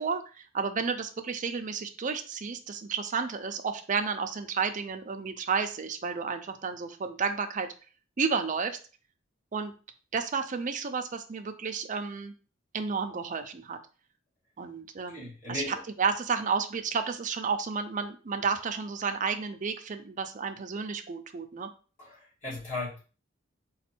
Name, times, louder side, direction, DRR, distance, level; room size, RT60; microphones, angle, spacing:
voice 1, 0.0-7.7 8.2-8.8 9.5-9.7 10.1-12.3 12.7-13.8 14.6-15.6 16.0-21.7, right 5 dB, 40° right, 7 dB, 0.5 m, -31 dB
voice 2, 15.1-15.8 22.0-23.0, left 2 dB, 40° left, -6 dB, 2.0 m, -36 dB
4.2 x 2.3 x 4.4 m, 0.36 s
head